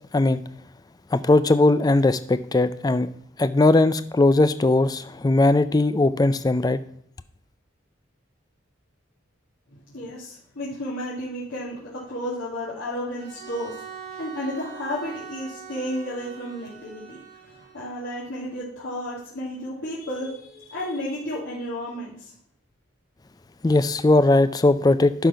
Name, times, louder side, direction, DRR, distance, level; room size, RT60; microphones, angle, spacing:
voice 1, 1.1-3.1 3.4-6.8 23.6-25.3, left 2 dB, 20° left, 0.3 m, -19 dB
voice 2, 9.9-17.2 17.5-22.3, equal, 90° left, 2.3 m, -32 dB
Bowed string instrument, 13.1-18.1, right 7 dB, 45° right, 4.5 m, -42 dB
11.0 x 4.0 x 5.6 m
head